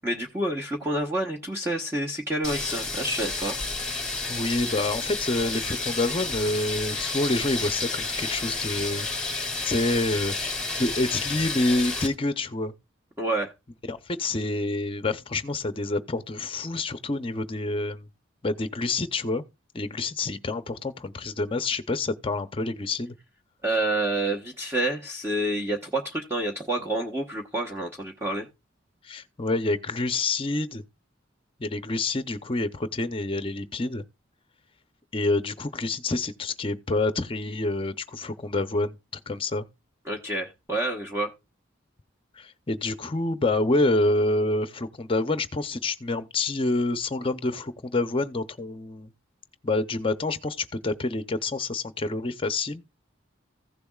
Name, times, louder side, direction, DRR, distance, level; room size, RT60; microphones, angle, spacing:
voice 1, 0.0-3.6 13.2-13.5 23.6-28.5 40.0-41.3, right 1 dB, 15° right, 1.0 m, -28 dB
sound 1, 2.4-12.1, left 3 dB, 5° left, 2.5 m, -31 dB
voice 2, 4.3-9.1 9.6-10.4 10.8-12.7 13.9-18.1 18.4-19.4 19.7-23.1 29.0-30.8 31.6-34.0 35.1-39.0 39.3-39.7 42.3-49.1 49.6-52.8, left 2 dB, 30° left, 0.7 m, -27 dB
15.5 x 6.8 x 2.4 m
head